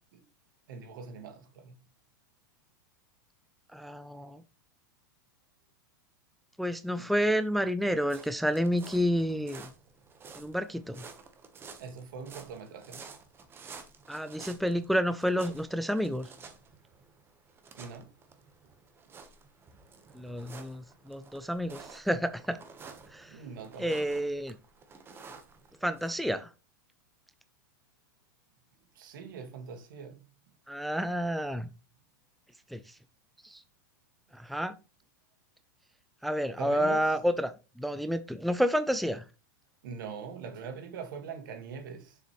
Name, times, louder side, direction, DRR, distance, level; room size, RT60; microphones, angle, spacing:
voice 1, 0.7-1.8 7.0-7.1 11.8-13.1 17.8-18.1 23.3-24.2 29.0-30.2 36.6-37.1 39.8-42.2, right 6 dB, 70° right, 1.8 m, -42 dB
voice 2, 3.7-4.4 6.6-9.7 10.4-11.0 14.1-16.3 20.1-22.6 23.1-23.4 23.8-24.6 25.8-26.5 30.7-31.7 32.7-32.9 33.4-33.6 34.3-34.7 36.2-39.2, equal, ahead, 0.4 m, -30 dB
sound 1, 8.0-26.1, right 5 dB, 20° right, 1.1 m, -51 dB
6.9 x 6.6 x 3.1 m
supercardioid pair, 130°, 11 cm